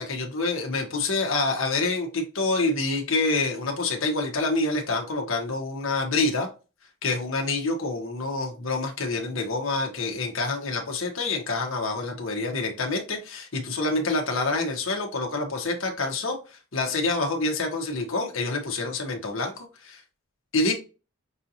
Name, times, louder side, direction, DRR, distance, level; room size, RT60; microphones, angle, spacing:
voice 1, 0.0-6.5 7.0-16.4 16.7-20.0 20.5-20.7, left 3 dB, 70° left, 2 dB, 1.1 m, -27 dB
5.9 x 2.7 x 2.8 m, 0.32 s
head